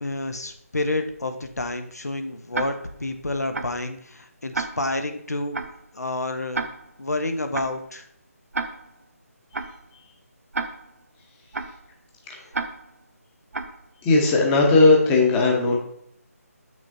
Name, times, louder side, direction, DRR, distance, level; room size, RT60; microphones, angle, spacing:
voice 1, 0.0-5.6 5.9-6.6 7.0-8.0, left 2 dB, 85° left, 7 dB, 0.8 m, -29 dB
Tick-tock, 2.5-3.0 3.5-3.9 4.5-5.0 5.5-5.9 6.5-7.0 7.5-7.9 8.5-9.0 9.5-9.9 10.5-11.0 11.5-11.9 12.5-13.0 13.5-13.9, right 3 dB, 70° right, 0.7 m, -32 dB
voice 2, 14.0-15.8, left 3 dB, 10° left, 0 dB, 0.8 m, -17 dB
7.3 x 6.1 x 2.6 m, 0.68 s
figure-of-eight pair, 155°, 8 cm